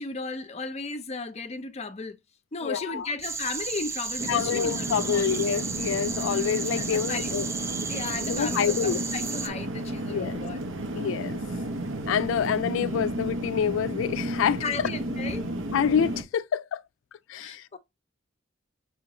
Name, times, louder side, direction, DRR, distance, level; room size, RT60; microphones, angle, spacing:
voice 1, 0.0-2.2 2.5-5.3 6.8-7.3 7.9-10.6 14.6-15.5 17.3-17.8, left 4 dB, 35° left, 0.5 m, -35 dB
voice 2, 2.6-3.1 4.3-7.5 8.3-9.0 10.1-10.4 10.9-11.4 12.1-14.6 15.7-16.8 17.3-17.8, left 8 dB, 85° left, 0.3 m, -27 dB
sound 1, 3.2-9.5, right 5 dB, 15° right, 0.3 m, -33 dB
sound 2, 4.2-16.2, right 1 dB, 75° right, 0.7 m, -33 dB
5.5 x 2.5 x 2.9 m
head